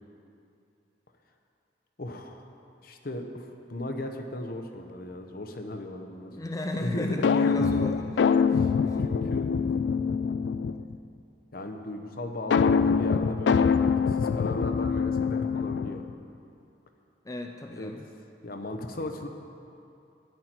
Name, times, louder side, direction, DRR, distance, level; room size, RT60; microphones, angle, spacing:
voice 1, 2.0-2.4 2.8-6.3 6.8-7.5 8.5-8.7 9.0-9.5 11.5-16.1 17.8-17.9 18.4-19.3, left 1 dB, 55° left, 4 dB, 0.9 m, -37 dB
voice 2, 6.3-8.3 8.9-9.0 17.3-18.0, left 1 dB, 20° left, 3 dB, 0.5 m, -35 dB
sound 1, 7.2-11.0 12.5-16.1, left 5 dB, 80° left, 0.3 m, -24 dB
13.0 x 9.4 x 4.5 m, 2.7 s
head